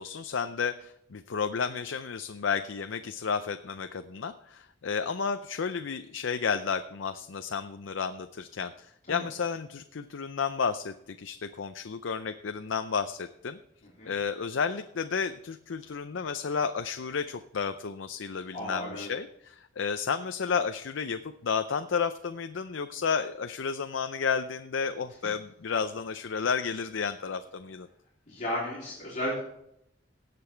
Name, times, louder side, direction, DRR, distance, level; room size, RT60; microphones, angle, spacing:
voice 1, 0.0-13.6 14.1-27.9, left 6 dB, 75° left, 9 dB, 0.5 m, -32 dB
voice 2, 18.5-19.1 28.3-29.4, equal, 40° left, -6 dB, 3.5 m, -34 dB
17.5 x 6.8 x 4.4 m, 0.76 s
head